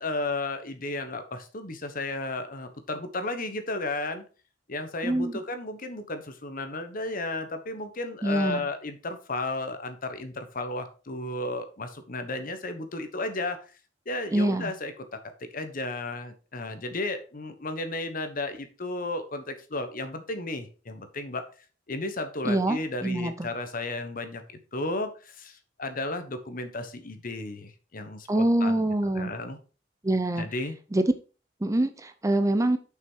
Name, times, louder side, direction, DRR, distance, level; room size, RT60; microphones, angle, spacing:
voice 1, 0.0-4.2 4.7-13.7 14.1-15.0 15.4-21.4 21.9-28.9 29.1-29.6 30.4-30.8, left 2 dB, 50° left, 9 dB, 1.2 m, -33 dB
voice 2, 5.0-5.3 8.2-8.6 14.3-14.7 22.4-23.5 28.3-29.3 30.0-30.4 30.9-31.1 31.6-32.8, right 1 dB, 20° right, 9 dB, 0.6 m, -25 dB
6.7 x 5.8 x 4.5 m, 0.36 s
head